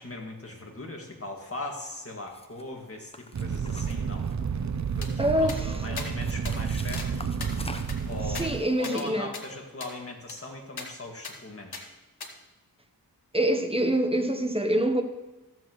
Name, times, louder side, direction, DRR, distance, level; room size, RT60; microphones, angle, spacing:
voice 1, 0.0-4.3 4.9-7.2 8.1-8.5 8.8-11.9, left 2 dB, 35° left, 2.0 m, -39 dB
sound 1, 2.3-2.6 3.1-4.6 5.0-5.6 6.2-8.1, left 2 dB, 15° left, 0.8 m, -43 dB
Fire, 3.3-8.6, right 6 dB, 50° right, 0.6 m, -30 dB
sound 2, 5.0-5.1 5.5-5.6 6.0-6.1 6.5-6.6 6.9-7.1 7.4-9.1 9.3-9.4 9.8-9.9 10.3-10.4 10.8-10.9 11.2-11.4 11.7-11.8 12.2-12.3, left 4 dB, 80° left, 1.3 m, -40 dB
voice 2, 5.2-5.8 8.3-9.3 13.3-15.0, right 1 dB, 15° right, 1.0 m, -25 dB
14.5 x 7.7 x 3.1 m
wide cardioid pair, 55°, 38 cm